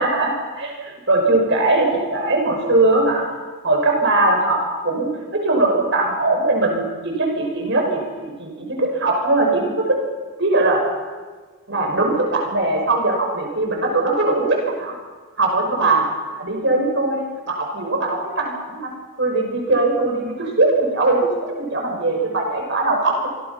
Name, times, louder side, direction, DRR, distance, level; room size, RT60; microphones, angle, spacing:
voice 1, 0.0-3.3 3.6-10.0 10.4-10.8 11.7-14.9 15.4-16.0 16.3-18.9 19.2-23.3, right 2 dB, 55° right, 1 dB, 6.3 m, -20 dB
27.5 x 23.5 x 5.9 m, 1.4 s
head